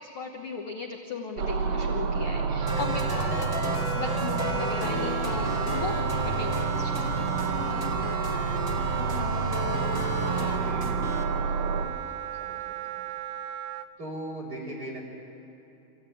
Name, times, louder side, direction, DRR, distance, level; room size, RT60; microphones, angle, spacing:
voice 1, 0.0-7.3, left 4 dB, 65° left, 2 dB, 1.3 m, -37 dB
sound 1, 1.4-11.8, right 5 dB, 60° right, 1.8 m, -29 dB
Wind instrument woodwind instrument, 2.6-13.9, right 12 dB, 80° right, 1.6 m, -37 dB
sound 2, 2.7-11.2, left 1 dB, 10° left, 1.8 m, -34 dB
voice 2, 10.2-13.1 14.0-15.0, right 1 dB, 25° right, -3 dB, 5.7 m, -41 dB
26.0 x 15.5 x 9.2 m, 3.0 s
omnidirectional pair, 4.0 m